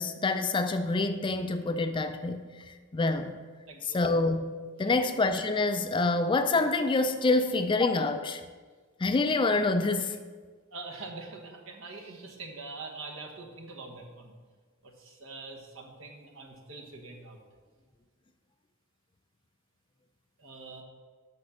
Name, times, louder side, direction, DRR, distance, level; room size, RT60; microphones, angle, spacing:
voice 1, 0.0-3.4 3.8-8.4 9.0-10.2, left 3 dB, 25° left, 9 dB, 0.4 m, -27 dB
voice 2, 3.7-4.0 5.0-5.1 10.7-14.3 14.8-17.4 20.4-20.8, right 3 dB, 70° right, 1 dB, 1.2 m, -44 dB
6.3 x 5.9 x 6.3 m, 1.5 s
head